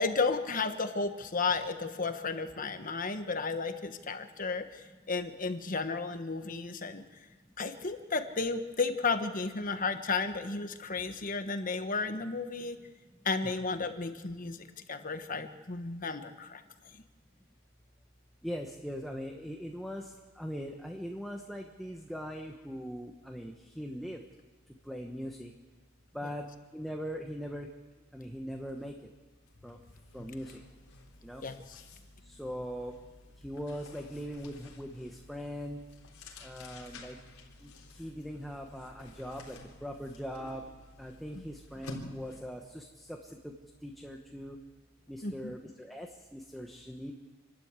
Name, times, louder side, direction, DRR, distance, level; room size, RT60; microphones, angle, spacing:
voice 1, 0.0-7.0 7.6-12.8 13.2-16.6 31.4-31.8 45.2-45.5, left 4 dB, 40° left, 8 dB, 1.3 m, -33 dB
voice 2, 18.4-24.2 24.8-25.5 26.1-27.7 28.1-29.1 29.6-29.8 30.1-30.6 31.2-31.4 32.2-33.0 33.4-35.8 36.4-37.2 37.6-40.6 41.0-43.5 43.8-44.6 45.1-47.1, equal, ahead, 1 dB, 1.2 m, -41 dB
sound 1, 28.7-28.9 29.2-42.6, left 2 dB, 85° left, 3.9 m, -51 dB
28.0 x 12.5 x 8.2 m, 1.3 s
head